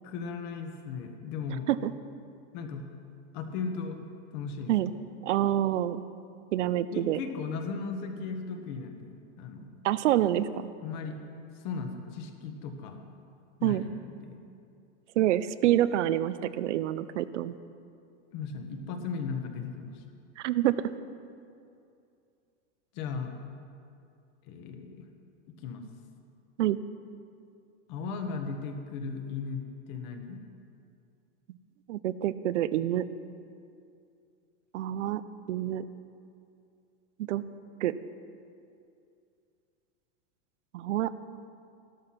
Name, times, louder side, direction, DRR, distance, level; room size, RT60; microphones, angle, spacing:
voice 1, 0.0-1.7 2.5-2.9 3.3-4.0 4.3-4.9 6.9-9.7 10.8-11.2 11.6-13.0 13.6-14.4 18.3-20.0 22.9-23.4 24.5-25.1 25.5-25.8 27.9-29.6 29.9-30.4, left 5 dB, 40° left, 5 dB, 1.4 m, -36 dB
voice 2, 5.2-6.0 6.5-7.2 9.8-10.7 13.6-13.9 15.2-17.6 20.4-20.8 26.6-26.8 31.9-33.1 34.7-35.2 35.5-35.8 37.2-37.4 37.8-38.0 40.7-41.1, right 12 dB, 80° right, 15 dB, 0.7 m, -27 dB
14.5 x 12.0 x 5.8 m, 2.5 s
supercardioid pair, 170°, 36 cm